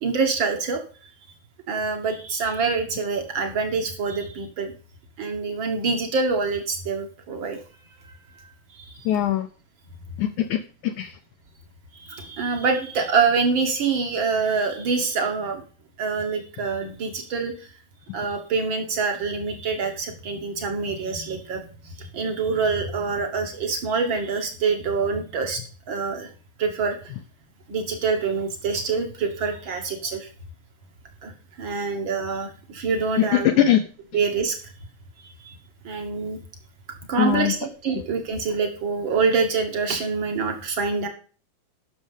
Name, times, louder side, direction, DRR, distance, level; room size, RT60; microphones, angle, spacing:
voice 1, 0.0-0.8 1.7-4.7 5.2-7.6 8.0-9.1 11.9-15.6 16.0-17.7 18.1-25.6 25.9-26.3 26.6-27.1 27.7-30.3 31.2-31.3 31.6-33.5 34.1-34.6 35.2-35.5 35.8-36.4 37.1-41.1, right 4 dB, 70° right, 4 dB, 1.1 m, -26 dB
voice 2, 9.0-9.5 10.2-11.2 33.2-33.8 37.2-37.5, left 11 dB, 90° left, 9 dB, 1.7 m, -21 dB
11.5 x 6.5 x 5.4 m, 0.38 s
omnidirectional pair, 4.3 m